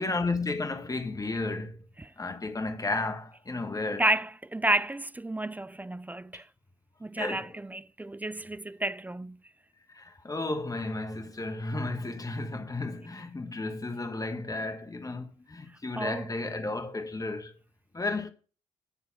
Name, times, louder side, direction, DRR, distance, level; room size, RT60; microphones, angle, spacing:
voice 1, 0.0-1.8 2.2-4.1 7.2-7.5 9.9-17.5 17.9-18.3, left 2 dB, 25° left, 1.5 m, -33 dB
voice 2, 3.9-6.5 7.0-9.4 16.0-16.3, right 1 dB, 10° right, 0.4 m, -31 dB
10.0 x 3.9 x 5.9 m
hypercardioid pair, 45°, 15 cm